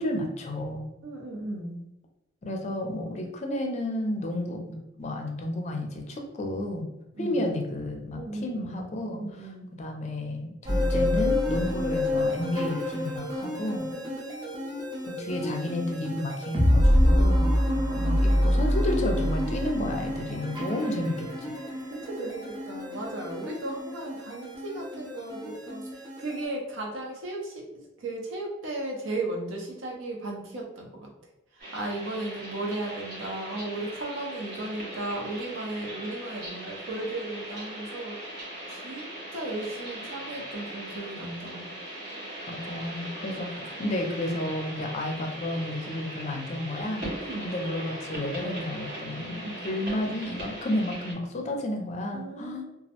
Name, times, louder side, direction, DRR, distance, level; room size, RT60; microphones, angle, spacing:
voice 1, 0.0-0.9 2.4-6.9 7.2-9.5 9.8-13.9 15.1-17.6 18.0-21.5 42.5-47.1 47.4-52.6, left 1 dB, 35° left, 2 dB, 0.4 m, -31 dB
voice 2, 1.0-1.8 7.1-7.4 8.1-8.8 9.2-9.7 13.9-15.0 21.9-25.9 26.2-27.5 28.0-31.1 31.5-38.1 38.7-41.7 47.2-47.5 49.4-49.6 52.1-52.6, right 2 dB, 90° right, -1 dB, 0.7 m, -36 dB
sound 1, 10.7-26.4, left 1 dB, 20° right, 0.4 m, -27 dB
sound 2, 31.6-51.1, right 1 dB, 55° right, 0.8 m, -39 dB
2.3 x 2.0 x 2.8 m, 0.93 s
head